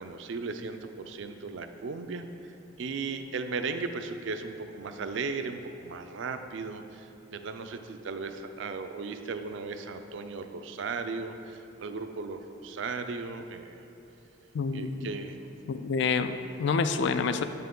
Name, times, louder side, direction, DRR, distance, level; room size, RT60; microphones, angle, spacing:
voice 1, 0.0-2.3 2.8-13.8 14.7-15.4, right 4 dB, 65° right, 8 dB, 0.4 m, -36 dB
voice 2, 14.5-15.1 15.7-17.4, left 5 dB, 60° left, 10 dB, 0.3 m, -28 dB
7.9 x 5.6 x 3.8 m, 2.8 s
head